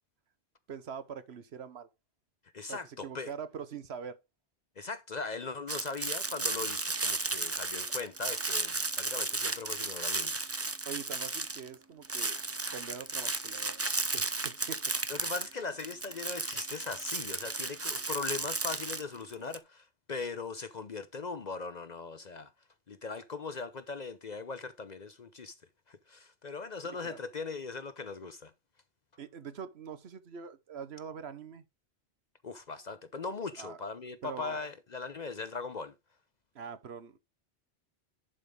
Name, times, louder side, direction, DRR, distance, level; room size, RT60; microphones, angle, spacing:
voice 1, 0.7-1.9 2.7-4.2 10.9-12.4 12.7-13.8 14.1-14.9 26.8-27.2 29.2-31.6 33.6-33.8 34.2-34.6 36.5-37.2, right 7 dB, 65° right, 1.2 m, -43 dB
voice 2, 2.5-3.3 4.8-10.4 15.1-22.5 22.9-25.5 25.9-28.5 32.4-35.9, left 4 dB, 45° left, 0.7 m, -39 dB
sound 1, 5.7-11.7 12.0-19.6, right 3 dB, 20° right, 0.4 m, -34 dB
11.0 x 5.1 x 3.7 m
omnidirectional pair, 1.2 m